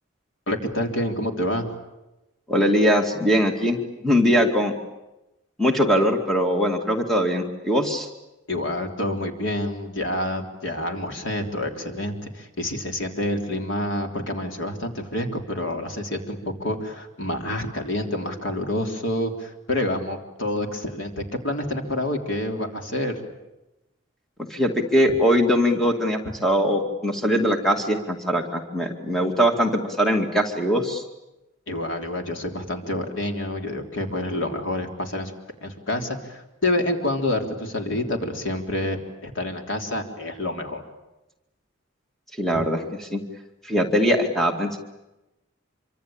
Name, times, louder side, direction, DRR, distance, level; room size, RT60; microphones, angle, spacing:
voice 1, 0.5-1.7 8.5-23.2 31.7-35.3 35.6-40.8, left 1 dB, 75° left, 4 dB, 3.5 m, -28 dB
voice 2, 2.5-4.7 5.6-8.1 24.5-31.0 42.4-43.2 43.6-44.8, equal, ahead, 3 dB, 2.2 m, -21 dB
26.5 x 25.0 x 8.9 m, 0.98 s
head